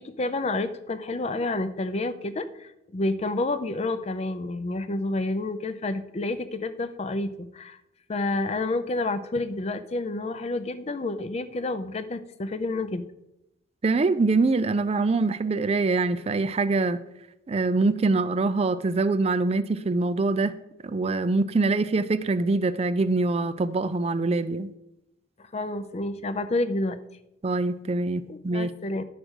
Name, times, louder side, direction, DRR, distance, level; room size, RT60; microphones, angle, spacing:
voice 1, 0.0-7.8 8.1-13.1 25.4-27.0 28.3-29.0, left 2 dB, 35° left, 0.5 m, -29 dB
voice 2, 13.8-17.0 17.5-20.5 20.8-24.7 27.4-28.7, right 3 dB, 30° right, 0.4 m, -24 dB
10.0 x 5.0 x 6.2 m
head